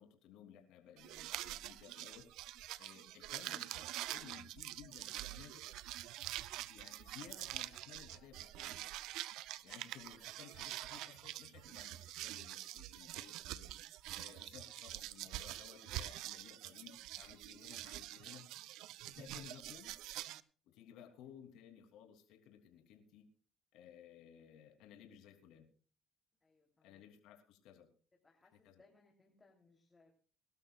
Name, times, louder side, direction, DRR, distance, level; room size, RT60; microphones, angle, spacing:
voice 1, 0.0-2.3 2.8-5.6 6.7-8.9 9.6-18.5 19.0-19.9 20.6-23.3 23.7-25.6 26.8-27.9 28.6-28.8, left 9 dB, 80° left, 5 dB, 3.1 m, -58 dB
sound 1, 1.0-20.4, right 15 dB, 80° right, 0.6 m, -46 dB
voice 2, 9.5-9.9 26.4-27.1 28.2-30.1, left 3 dB, 20° left, 1 dB, 3.4 m, -70 dB
24.0 x 12.5 x 2.4 m, 0.41 s
cardioid pair, 90°, 0 cm